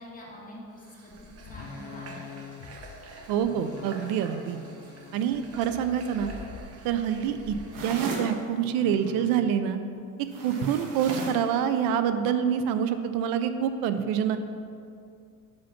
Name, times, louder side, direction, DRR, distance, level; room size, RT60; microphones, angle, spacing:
voice 1, 0.0-2.4, equal, 25° left, -5 dB, 1.9 m, -46 dB
Water / Water tap faucet, 0.7-8.3, right 3 dB, 45° right, 0.9 m, -48 dB
sound 1, 1.1-8.0 8.7-9.7 11.1-11.3, left 6 dB, 45° left, 0.8 m, -46 dB
voice 2, 3.3-4.6 5.1-6.3 6.8-7.5 7.8-9.8 10.4-14.4, right 8 dB, 85° right, 10 dB, 0.5 m, -26 dB
sound 2, 7.7-8.3 10.3-11.5, right 3 dB, 70° right, 1.3 m, -35 dB
5.7 x 5.1 x 5.7 m, 2.4 s
cardioid pair, 115°, 35 cm